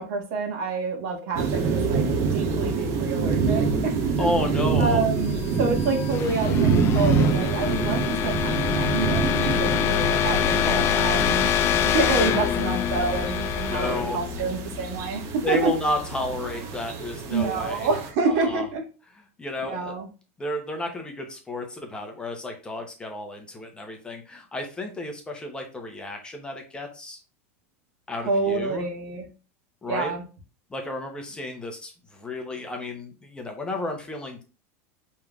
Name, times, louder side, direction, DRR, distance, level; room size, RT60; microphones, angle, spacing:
voice 1, 0.0-2.0 2.3-4.3 4.8-11.5 11.8-15.7 17.3-18.8 19.6-20.1 28.2-29.2 29.9-30.2, right 4 dB, 65° right, 3 dB, 1.4 m, -28 dB
sound 1, 1.4-18.1, right 4 dB, 40° right, 0.9 m, -26 dB
voice 2, 4.2-5.0 10.6-11.2 13.7-14.2 15.4-17.9 18.3-18.7 19.4-19.9 20.4-27.2 28.1-28.9 29.8-30.1 30.7-34.4, left 1 dB, 10° left, 3 dB, 0.8 m, -32 dB
sound 2, 5.4-15.2, left 10 dB, 35° left, 0.4 m, -26 dB
5.5 x 3.2 x 2.4 m, 0.33 s
supercardioid pair, 135°, 8 cm